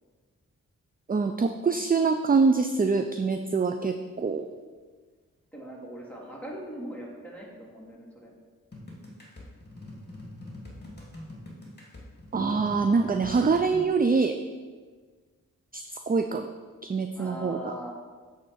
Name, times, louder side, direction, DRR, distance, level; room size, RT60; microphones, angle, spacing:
voice 1, 1.1-4.5 12.3-14.4 15.7-16.5 16.8-17.7, right 4 dB, 25° right, 7 dB, 0.5 m, -25 dB
voice 2, 5.5-8.3 17.1-17.9, equal, 5° left, -3 dB, 2.5 m, -40 dB
sound 1, 8.7-13.9, left 1 dB, 30° left, 2.5 m, -43 dB
8.4 x 3.8 x 6.8 m, 1.5 s
cardioid pair, 40°, 34 cm